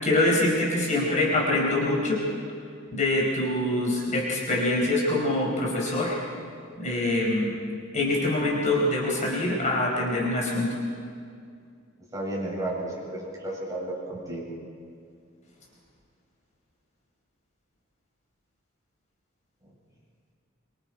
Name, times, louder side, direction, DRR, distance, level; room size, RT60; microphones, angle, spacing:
voice 1, 0.0-2.2 2.9-6.2 6.8-7.5 7.9-10.8, left 1 dB, 35° left, -3 dB, 4.7 m, -24 dB
voice 2, 12.1-14.5, right 1 dB, 20° right, -6 dB, 7.8 m, -33 dB
26.0 x 24.5 x 5.0 m, 2.3 s
head